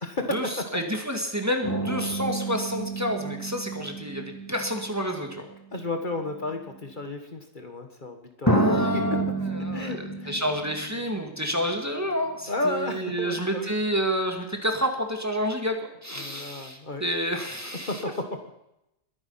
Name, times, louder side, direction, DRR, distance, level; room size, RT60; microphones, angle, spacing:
voice 1, 0.0-0.7 3.8-3.9 5.7-9.2 9.7-10.4 12.5-13.7 16.1-17.1 17.8-18.6, left 2 dB, 45° left, 5 dB, 1.7 m, -33 dB
voice 2, 0.7-5.4 8.4-9.2 9.6-15.8 16.0-17.9, equal, 15° right, 3 dB, 2.1 m, -29 dB
sound 1, 1.6-5.6 6.5-6.6 8.5-11.8 12.1-12.2, right 1 dB, 15° left, 2.8 m, -29 dB
21.5 x 9.8 x 5.7 m, 0.86 s
omnidirectional pair, 1.2 m